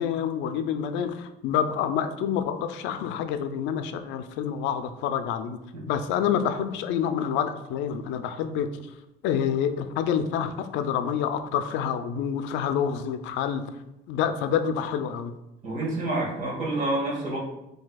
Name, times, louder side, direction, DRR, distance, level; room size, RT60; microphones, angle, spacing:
voice 1, 0.0-5.6 5.9-8.7 9.2-13.6 14.1-15.3, left 8 dB, 85° left, 9 dB, 0.4 m, -27 dB
voice 2, 15.6-17.4, right 2 dB, 45° right, -2 dB, 1.4 m, -28 dB
7.4 x 2.7 x 2.3 m, 0.91 s
cardioid pair, 140°, 19 cm